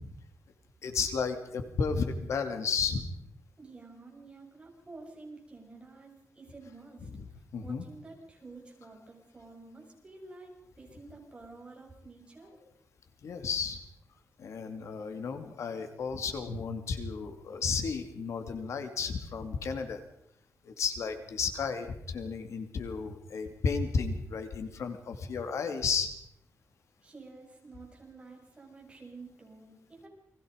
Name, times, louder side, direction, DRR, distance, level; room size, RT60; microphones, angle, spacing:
voice 1, 0.8-3.1 7.0-7.3 7.5-7.9 13.2-13.8 14.4-20.0 20.6-26.1, left 5 dB, 75° left, 7 dB, 2.7 m, -33 dB
voice 2, 3.6-6.1 6.4-7.0 7.6-12.5 27.0-30.1, right 3 dB, 20° right, 0 dB, 7.2 m, -50 dB
29.5 x 21.5 x 5.3 m, 0.74 s
wide cardioid pair, 145°, 5 cm